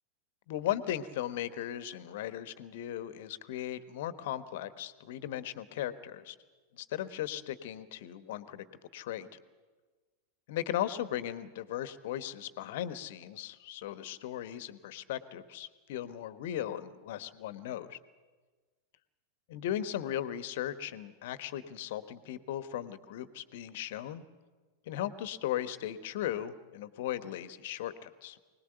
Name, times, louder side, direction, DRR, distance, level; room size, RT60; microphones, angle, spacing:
voice 1, 0.5-6.3 6.7-8.6 8.9-9.3 10.5-18.0 19.5-24.2 24.9-28.4, left 11 dB, 55° left, 13 dB, 1.2 m, -37 dB
24.5 x 19.0 x 8.0 m, 1.4 s
figure-of-eight pair, 90°, 0 cm